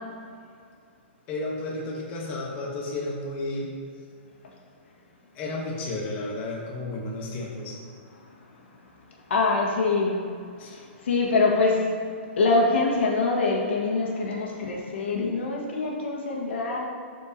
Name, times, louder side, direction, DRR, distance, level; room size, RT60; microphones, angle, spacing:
voice 1, 1.3-3.7 5.3-7.8 10.6-10.8, left 2 dB, 30° left, -3 dB, 1.1 m, -32 dB
voice 2, 9.3-10.3 11.0-11.9 12.4-16.9, left 3 dB, 75° left, -2 dB, 1.6 m, -24 dB
12.5 x 4.5 x 2.9 m, 2.3 s
hypercardioid pair, 150°, 6 cm